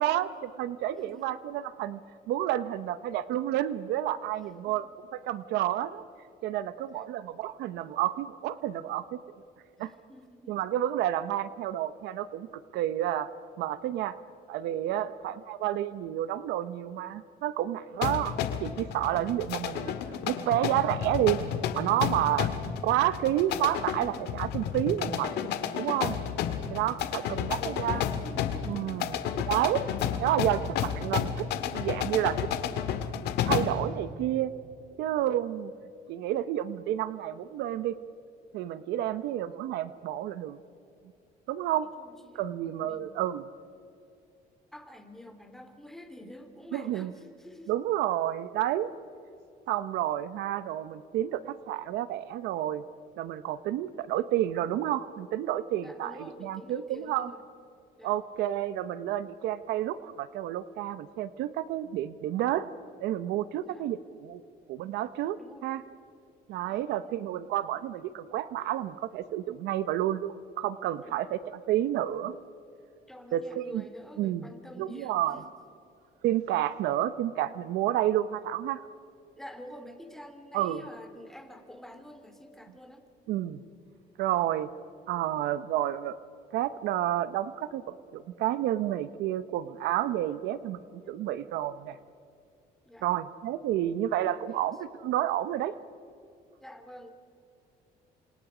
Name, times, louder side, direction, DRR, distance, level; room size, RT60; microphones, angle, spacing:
voice 1, 0.0-2.0 2.3-6.0 6.4-9.2 9.8-9.9 10.5-13.3 13.6-14.2 14.5-19.9 20.3-21.4 21.7-22.5 22.8-25.3 25.8-26.2 26.7-28.1 28.7-29.9 30.2-32.5 33.4-34.5 35.0-35.7 36.1-37.9 38.5-40.6 41.5-41.9 42.3-43.4 46.7-47.1 47.7-48.9 49.7-52.8 53.2-57.3 58.0-62.7 63.0-64.4 64.7-65.8 66.5-72.4 73.3-73.8 74.2-74.5 74.8-75.4 76.2-78.8 80.5-80.8 83.3-83.6 84.2-84.7 85.1-86.2 86.5-90.8 91.1-92.0 93.0-95.7, right 12 dB, 85° right, 14 dB, 0.9 m, -30 dB
voice 2, 0.9-1.4 4.6-4.8 6.9-7.1 9.8-10.6 14.9-15.4 19.1-19.6 26.5-29.2 39.0-39.2 41.8-42.5 42.8-43.2 44.7-47.7 48.0-48.1 55.8-57.4 58.0-58.1 63.6-63.8 65.4-65.7 66.7-68.1 71.0-71.2 73.1-75.5 77.0-77.2 79.3-83.1 84.3-84.4 90.3-90.6 92.8-93.1 94.5-94.8 96.6-97.1, left 1 dB, ahead, 6 dB, 2.9 m, -48 dB
sound 1, 18.0-33.9, left 9 dB, 80° left, 1.8 m, -32 dB
29.0 x 26.5 x 5.0 m, 2.5 s
cardioid pair, 110°, 17 cm